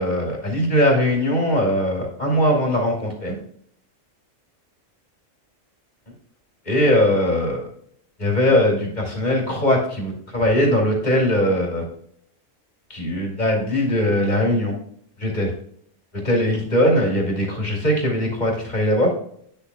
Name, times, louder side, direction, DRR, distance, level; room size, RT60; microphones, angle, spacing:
voice 1, 0.0-3.3 6.7-7.7 8.2-11.9 12.9-14.7 15.2-15.5 16.1-19.1, left 1 dB, 35° left, -1 dB, 2.6 m, -20 dB
9.7 x 7.0 x 2.2 m, 0.65 s
omnidirectional pair, 1.2 m